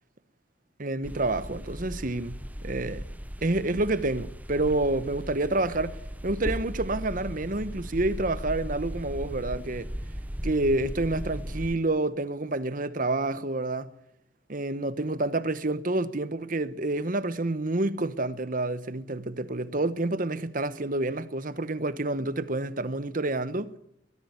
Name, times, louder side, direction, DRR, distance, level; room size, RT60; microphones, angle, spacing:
voice 1, 0.8-3.1 3.4-6.0 6.2-9.9 10.5-13.9 14.5-23.7, right 2 dB, 45° right, 1.1 m, -28 dB
sound 1, 1.0-11.8, equal, 10° right, 0.9 m, -37 dB
21.5 x 15.0 x 9.6 m
head